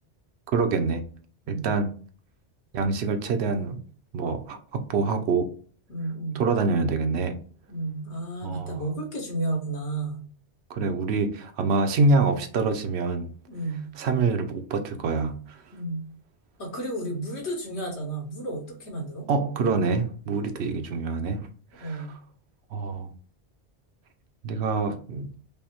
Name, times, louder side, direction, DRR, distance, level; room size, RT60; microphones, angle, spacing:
voice 1, 0.5-1.0 1.5-1.9 2.7-3.8 4.1-5.5 6.3-7.4 8.4-8.8 10.7-13.3 14.0-15.6 19.3-21.5 21.8-22.1 22.7-23.1 24.4-25.3, right 4 dB, 70° right, 0.9 m, -25 dB
voice 2, 5.9-6.4 7.7-10.2 13.5-13.9 15.7-16.0 16.6-19.3 21.8-22.2, right 2 dB, 75° left, 1.5 m, -32 dB
5.2 x 2.0 x 2.9 m
omnidirectional pair, 1.1 m